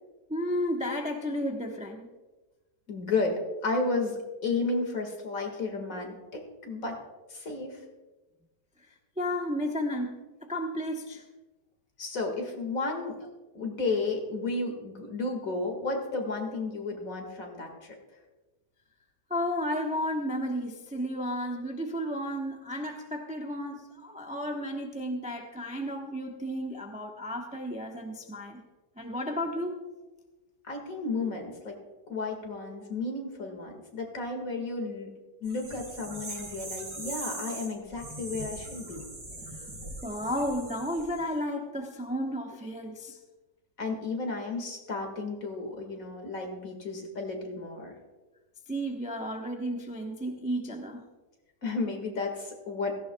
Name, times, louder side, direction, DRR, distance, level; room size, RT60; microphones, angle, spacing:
voice 1, 0.3-2.1 9.2-11.2 19.3-28.6 29.0-29.8 39.5-39.7 40.0-43.2 48.7-51.0, equal, 5° right, 1 dB, 0.6 m, -33 dB
voice 2, 2.9-7.0 7.3-7.8 12.0-13.3 13.5-17.9 30.7-31.8 32.1-35.1 35.4-39.0 43.8-47.9 51.6-52.9, left 3 dB, 50° left, 3 dB, 2.3 m, -33 dB
sound 1, 35.4-41.3, right 2 dB, 75° right, 4.9 m, -41 dB
17.0 x 15.0 x 2.3 m, 1.2 s
omnidirectional pair, 1.8 m